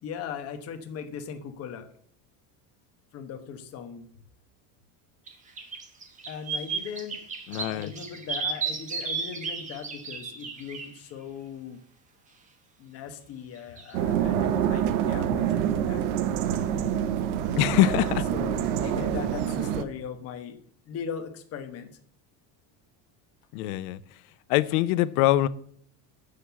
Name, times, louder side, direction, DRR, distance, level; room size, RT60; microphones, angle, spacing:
voice 1, 0.0-1.9 3.1-4.1 6.3-7.2 7.5-11.8 12.8-16.0 18.3-20.6 20.9-22.0, left 7 dB, 35° left, 1.1 m, -39 dB
sound 1, 5.3-5.4 5.6-10.9 13.8-13.9, right 5 dB, 15° right, 1.0 m, -33 dB
voice 2, 7.5-7.9 17.6-18.2 23.5-24.0 24.5-25.5, left 15 dB, 75° left, 0.7 m, -23 dB
sound 2, 13.9-19.8, right 9 dB, 80° right, 0.9 m, -26 dB
7.5 x 6.7 x 6.9 m
cardioid pair, 170°, 43 cm